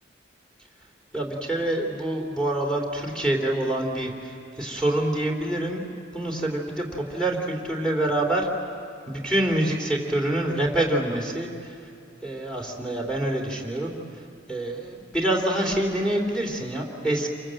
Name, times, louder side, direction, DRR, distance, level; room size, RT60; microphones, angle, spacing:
voice 1, 1.1-5.8 6.1-8.5 9.1-11.7 12.2-13.9 14.5-17.3, right 1 dB, 5° left, -1 dB, 3.2 m, -26 dB
28.0 x 24.0 x 7.7 m, 2.6 s
head